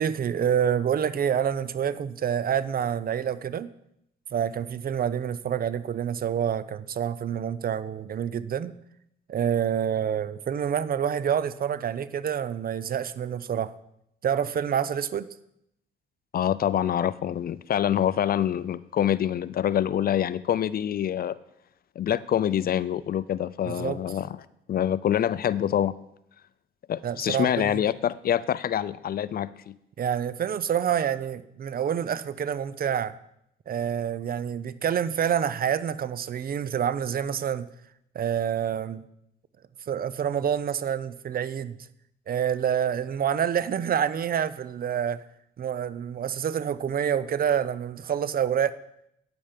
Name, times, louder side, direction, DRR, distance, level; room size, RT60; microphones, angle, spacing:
voice 1, 0.0-3.7 4.3-8.7 9.3-13.7 14.2-15.3 23.7-24.0 27.0-27.8 30.0-33.2 33.7-37.7 38.1-39.0 39.9-41.8 42.3-45.2 45.6-48.8, right 8 dB, 50° right, 16 dB, 0.6 m, -27 dB
voice 2, 16.3-21.4 22.0-24.4 24.7-25.9 26.9-29.7, left 10 dB, 50° left, 18 dB, 0.4 m, -26 dB
9.6 x 8.8 x 5.2 m, 0.78 s
cardioid pair, 90°, 20 cm